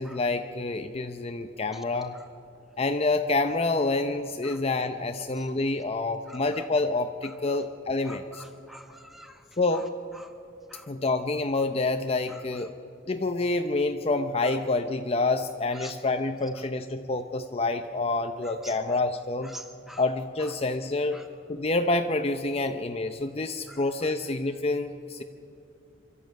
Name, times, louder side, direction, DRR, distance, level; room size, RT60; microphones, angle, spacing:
voice 1, 0.0-2.2 2.8-8.4 9.6-9.9 10.9-12.8 13.1-19.5 20.0-21.2 21.5-25.2, left 2 dB, 35° left, 7 dB, 0.6 m, -27 dB
voice 2, 8.1-9.3 10.7-10.9 15.8-15.9 18.6-18.7 19.5-20.0 21.1-21.2 23.7-23.8, equal, ahead, 6 dB, 1.3 m, -45 dB
25.0 x 13.0 x 9.2 m, 2.6 s
head